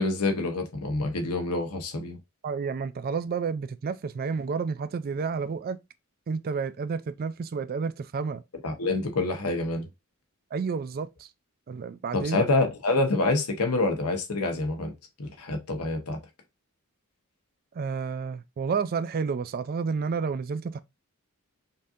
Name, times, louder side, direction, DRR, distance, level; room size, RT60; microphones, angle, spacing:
voice 1, 0.0-2.2 8.6-9.9 12.1-14.9 15.2-16.2, left 2 dB, 80° left, 1.0 m, -27 dB
voice 2, 2.4-5.8 6.3-8.4 10.5-11.3 11.7-12.4 17.8-20.8, right 5 dB, 40° right, 0.4 m, -30 dB
5.3 x 2.8 x 2.5 m
head